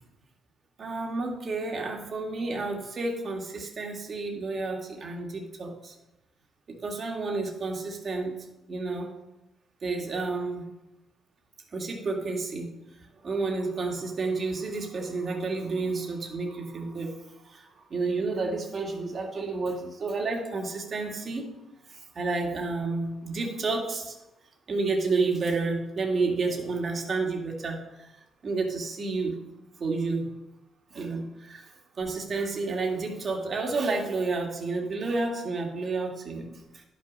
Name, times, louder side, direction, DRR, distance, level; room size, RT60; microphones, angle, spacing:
voice 1, 0.8-5.9 6.7-9.1 9.8-10.7 11.7-12.8 13.2-21.5 21.9-24.2 24.7-28.1 28.4-29.4 29.8-30.3 30.9-36.8, right 3 dB, 45° right, 1 dB, 2.1 m, -30 dB
11.0 x 6.1 x 5.4 m, 0.96 s
cardioid pair, 90°, 0 cm